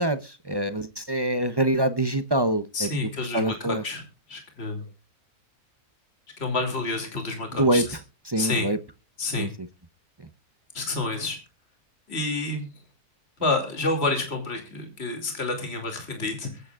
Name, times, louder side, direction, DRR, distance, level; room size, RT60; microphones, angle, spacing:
voice 1, 0.0-2.9 3.3-3.8 7.6-7.9 8.3-8.8 9.4-9.7, right 1 dB, 30° right, 10 dB, 0.5 m, -25 dB
voice 2, 2.7-4.0 4.3-4.8 6.4-7.8 8.4-8.7 9.2-9.5 10.7-11.4 12.1-12.7 13.4-16.6, left 3 dB, 40° left, 4 dB, 3.1 m, -29 dB
22.5 x 9.4 x 2.5 m, 0.32 s
omnidirectional pair, 1.6 m